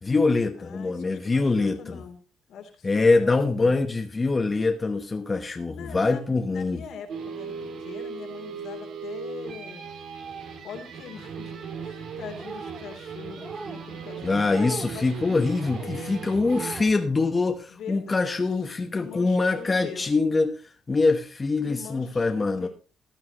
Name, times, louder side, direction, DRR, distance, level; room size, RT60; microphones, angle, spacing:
voice 1, 0.0-2.0 2.8-6.8 14.2-22.7, left 3 dB, 30° left, 5 dB, 1.1 m, -24 dB
voice 2, 0.6-2.2 2.5-3.8 5.7-9.9 10.6-11.5 11.8-15.1 15.7-16.3 17.7-18.5 18.9-20.1 21.6-22.7, left 7 dB, 80° left, 3 dB, 3.3 m, -42 dB
sound 1, 7.1-16.9, right 5 dB, 75° right, 2.7 m, -38 dB
sound 2, 12.3-12.9 13.4-13.8 14.4-14.9 15.5-15.9 16.3-16.9, right 3 dB, 25° right, 0.9 m, -39 dB
15.5 x 10.5 x 3.0 m, 0.35 s
cardioid pair, 90°, 0 cm